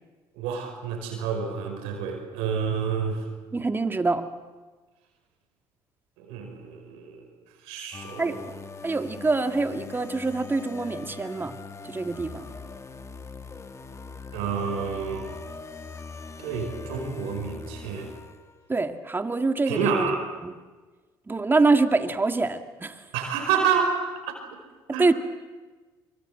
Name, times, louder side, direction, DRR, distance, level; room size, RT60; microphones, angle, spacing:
voice 1, 0.3-3.2 6.2-7.3 7.6-8.4 14.3-15.3 16.4-18.1 19.7-20.2 23.1-24.4 24.9-25.1, right 6 dB, 85° right, 4 dB, 5.1 m, -28 dB
voice 2, 3.5-4.3 8.2-8.4 8.8-11.6 11.8-12.5 18.7-20.2 20.4-20.5 21.3-23.0 25.0-25.1, right 3 dB, 20° right, 7 dB, 2.1 m, -25 dB
sound 1, 7.9-18.7, left 4 dB, 30° left, 2.0 m, -41 dB
24.0 x 23.5 x 7.9 m, 1.3 s
supercardioid pair, 70°, 10 cm